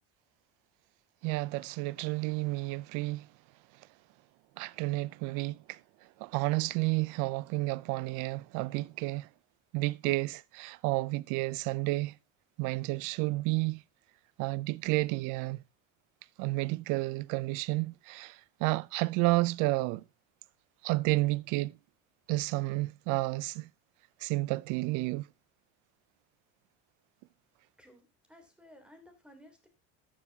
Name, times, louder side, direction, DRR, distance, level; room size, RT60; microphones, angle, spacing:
voice 1, 1.2-3.3 4.6-5.8 6.2-9.3 9.7-12.1 12.6-13.8 14.4-15.6 16.4-18.4 18.6-20.0 20.8-21.7 22.3-23.7 24.2-25.2, right 21 dB, 65° right, 0.6 m, -31 dB
voice 2, 27.8-29.7, left 1 dB, 5° right, 3.2 m, -56 dB
13.5 x 7.0 x 2.8 m
supercardioid pair, 120°, 33 cm